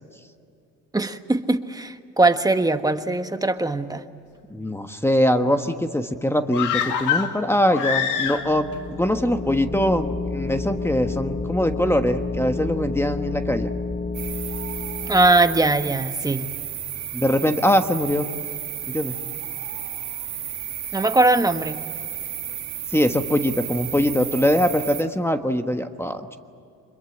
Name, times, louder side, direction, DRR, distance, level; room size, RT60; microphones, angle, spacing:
voice 1, 0.9-4.0 15.1-16.5 20.9-21.8, right 2 dB, 10° right, 8 dB, 1.4 m, -20 dB
voice 2, 4.5-13.7 17.1-18.3 18.9-19.1 22.9-26.4, equal, 10° left, 7 dB, 1.3 m, -22 dB
sound 1, 6.5-8.8 9.0-9.1, left 8 dB, 80° left, 2.0 m, -25 dB
sound 2, 8.2-16.0, left 3 dB, 25° left, 1.1 m, -30 dB
sound 3, 14.1-25.0, right 10 dB, 65° right, 2.2 m, -32 dB
25.5 x 22.0 x 8.7 m, 2.4 s
cardioid pair, 90°, 30 cm